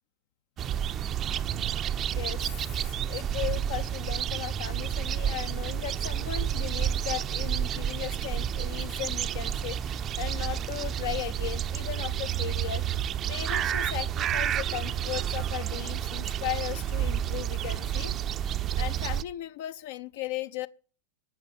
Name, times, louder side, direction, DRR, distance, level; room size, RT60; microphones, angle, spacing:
sound 1, 0.6-19.2, right 10 dB, 30° right, 0.6 m, -30 dB
voice 1, 2.1-2.5 3.1-13.0 13.3-18.1 18.4-18.5 18.8-20.7, left 15 dB, 50° left, 0.6 m, -37 dB
12.0 x 8.3 x 9.5 m
figure-of-eight pair, 90°, 0 cm